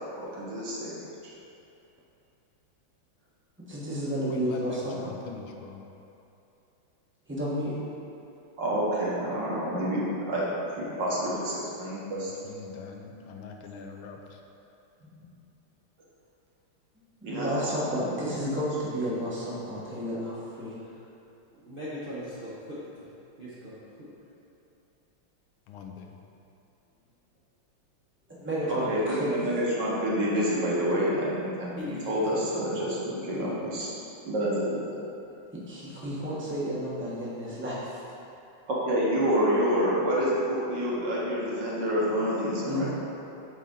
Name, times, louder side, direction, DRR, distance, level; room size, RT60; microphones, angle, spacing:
voice 1, 0.2-0.9 8.6-12.3 17.2-18.1 28.7-33.9 34.2-35.0 38.7-42.9, equal, 60° right, -6 dB, 1.8 m, -28 dB
voice 2, 3.7-5.1 7.3-7.7 17.3-20.8 28.3-29.4 35.5-38.0 42.6-42.9, equal, 10° right, -8 dB, 0.7 m, -31 dB
voice 3, 4.3-5.8 12.2-14.4 25.7-26.2, left 5 dB, 80° left, 2 dB, 1.4 m, -42 dB
voice 4, 21.6-22.8 23.4-23.7 31.8-33.0 33.3-33.5, left 1 dB, 45° right, -10 dB, 0.7 m, -39 dB
8.2 x 4.2 x 3.7 m, 2.8 s
omnidirectional pair, 2.3 m